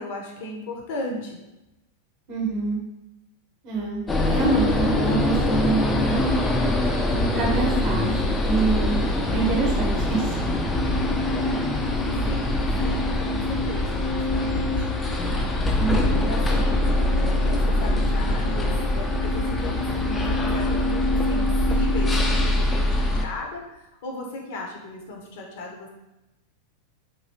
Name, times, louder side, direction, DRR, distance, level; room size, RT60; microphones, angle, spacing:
voice 1, 0.0-1.4 12.3-14.9 15.2-15.6 16.1-23.6 24.0-25.9, left 2 dB, 50° left, 0 dB, 0.7 m, -36 dB
voice 2, 2.3-2.8 3.6-6.2 6.9-10.3 15.8-16.3, right 4 dB, 40° right, -1 dB, 0.8 m, -26 dB
sound 1, 4.1-23.3, left 1 dB, 15° left, 0.3 m, -23 dB
sound 2, 13.4-19.8, left 11 dB, 75° right, 0.4 m, -42 dB
3.0 x 2.6 x 2.8 m, 0.95 s
figure-of-eight pair, 90°, 0 cm